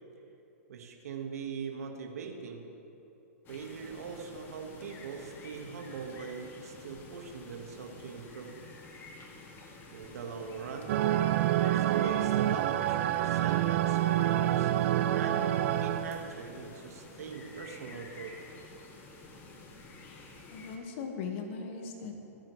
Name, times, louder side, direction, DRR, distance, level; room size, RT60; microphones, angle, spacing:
voice 1, 0.7-2.7 3.5-8.6 9.9-11.0 11.6-15.5 15.8-18.4, right 5 dB, 75° right, 3 dB, 1.8 m, -41 dB
sound 1, 3.4-20.8, left 3 dB, 25° left, 1.5 m, -50 dB
sound 2, 10.9-16.3, right 12 dB, 60° right, 0.5 m, -27 dB
voice 2, 20.0-22.2, left 5 dB, 55° left, 3 dB, 1.7 m, -40 dB
24.0 x 8.9 x 3.3 m, 3.0 s
hypercardioid pair, 125°, 8 cm